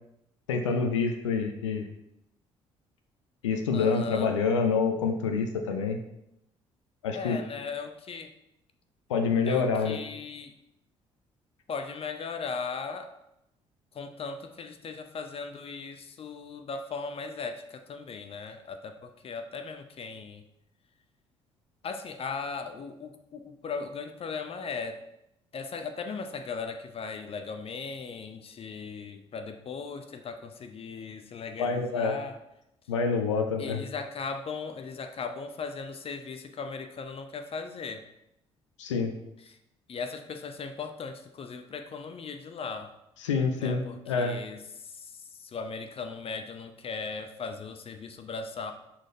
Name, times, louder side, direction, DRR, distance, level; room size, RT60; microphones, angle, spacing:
voice 1, 0.5-1.9 3.4-6.0 7.0-7.4 9.1-10.0 31.6-32.2 32.9-33.8 38.8-39.1 43.2-44.4, left 5 dB, 80° left, 5 dB, 0.6 m, -27 dB
voice 2, 3.7-4.4 7.1-8.3 9.5-10.5 11.7-13.2 13.9-20.4 21.8-25.0 25.5-32.4 33.6-38.0 39.4-39.6 39.9-43.0 43.6-48.7, left 5 dB, 40° left, 7 dB, 0.7 m, -38 dB
6.2 x 4.3 x 3.8 m, 0.82 s
figure-of-eight pair, 50°, 15 cm